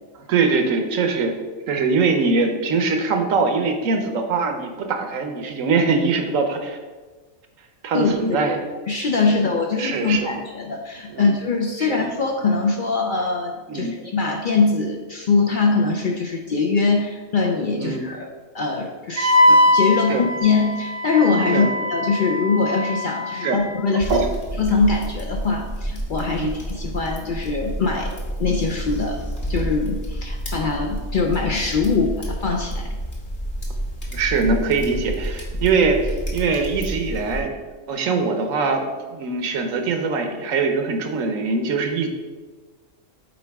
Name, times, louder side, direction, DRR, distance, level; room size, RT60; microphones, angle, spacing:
voice 1, 0.1-1.3 1.7-6.8 7.8-8.7 9.8-10.3 11.1-11.3 11.8-12.0 13.7-14.0 17.8-18.1 20.1-20.3 21.5-21.7 23.3-23.6 23.9-24.3 26.4-26.5 34.1-37.5 37.9-38.8 39.1-42.1, right 4 dB, 80° right, 5 dB, 1.2 m, -22 dB
voice 2, 7.9-8.4 8.9-18.3 18.5-24.2 24.6-28.1 28.4-29.2 29.5-32.9, left 4 dB, 55° left, 2 dB, 0.6 m, -22 dB
Wind instrument woodwind instrument, 19.2-23.8, left 1 dB, 55° right, 0.8 m, -21 dB
sound 1, 24.0-37.4, equal, 40° left, 1.2 m, -29 dB
7.7 x 4.5 x 3.4 m, 1.3 s
omnidirectional pair, 1.3 m